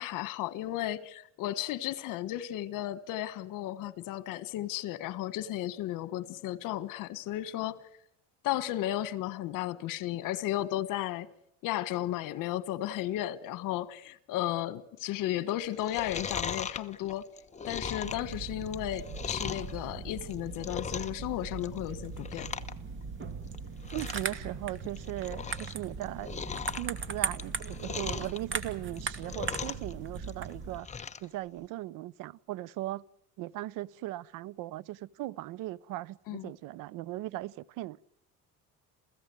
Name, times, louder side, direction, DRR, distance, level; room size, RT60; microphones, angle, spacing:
voice 1, 0.0-7.8 8.4-11.3 11.6-17.3 17.6-22.5 36.3-36.5, left 13 dB, 70° left, 1.6 m, -34 dB
Chewing mastication, 15.7-19.7 20.2-21.2 21.5-21.9 22.2-22.7 23.0-23.1 23.5-23.6 23.8-24.3 24.7-25.7 26.0-28.4 28.9-29.9 30.2-31.3 31.6-31.7, left 6 dB, 20° left, 1.1 m, -38 dB
sound 1, 18.0-30.8, right 5 dB, 35° right, 2.5 m, -39 dB
voice 2, 23.9-26.3 26.8-30.9 31.2-33.0 33.4-38.0, right 16 dB, 75° right, 0.8 m, -38 dB
28.5 x 16.5 x 8.0 m
cardioid pair, 140°, 33 cm